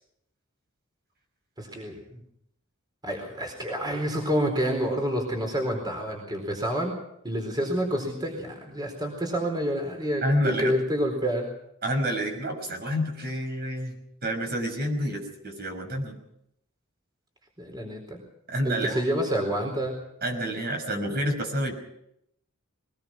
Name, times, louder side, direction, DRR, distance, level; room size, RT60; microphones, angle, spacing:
voice 1, 1.6-2.2 3.0-6.9 7.2-11.5 17.6-18.2 18.6-19.9, equal, 20° right, 2 dB, 4.2 m, -28 dB
voice 2, 10.2-10.7 11.8-14.0 14.2-16.2 18.5-19.0 20.2-21.7, equal, 50° right, 4 dB, 5.8 m, -28 dB
22.5 x 20.0 x 6.1 m, 0.78 s
head